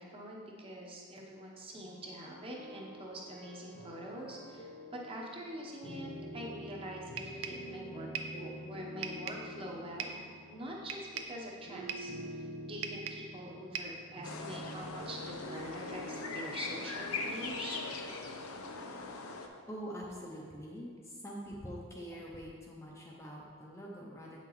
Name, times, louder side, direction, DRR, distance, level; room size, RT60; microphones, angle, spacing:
voice 1, 0.0-17.8, right 1 dB, 25° right, -2 dB, 0.9 m, -45 dB
sound 1, 1.7-18.1, equal, 45° left, 1.0 m, -47 dB
sound 2, 7.2-7.7 8.1-8.4 9.0-9.5 10.0-10.3 10.9-11.4 11.9-12.2 12.8-13.3 13.7-14.0, right 6 dB, 75° right, 0.5 m, -40 dB
sound 3, 14.2-19.5, left 4 dB, 85° left, 0.6 m, -41 dB
voice 2, 19.7-24.4, equal, 15° left, -3 dB, 0.5 m, -45 dB
8.0 x 5.9 x 3.1 m, 2.1 s
head